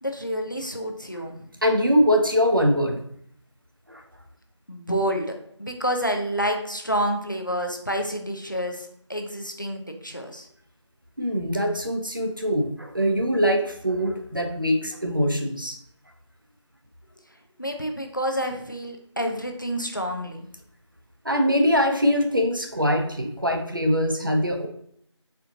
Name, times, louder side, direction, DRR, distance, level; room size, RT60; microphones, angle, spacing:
voice 1, 0.0-1.5 4.7-5.3 5.6-10.5 17.6-20.5, equal, 40° left, 4 dB, 0.4 m, -28 dB
voice 2, 1.6-3.0 3.9-4.0 11.2-15.8 21.2-24.7, equal, 45° right, 4 dB, 0.4 m, -23 dB
4.2 x 2.6 x 2.6 m, 0.66 s
figure-of-eight pair, 180°, 16 cm